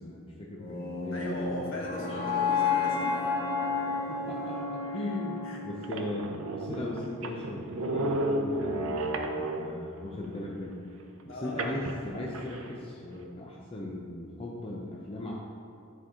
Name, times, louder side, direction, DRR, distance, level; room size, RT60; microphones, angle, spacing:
voice 1, 0.0-1.7 4.1-10.8 11.3-15.3, left 1 dB, 25° left, -3 dB, 0.6 m, -38 dB
sound 1, 0.6-6.7, left 5 dB, 50° left, 1.7 m, -31 dB
voice 2, 1.1-3.2 3.8-4.0 5.4-5.6 11.3-11.6, equal, 65° left, -3 dB, 1.4 m, -39 dB
sound 2, 4.9-5.0 5.5-5.6 5.8-9.9 11.6-12.7, right 1 dB, 80° right, 0.6 m, -33 dB
9.3 x 4.5 x 3.7 m, 2.5 s
head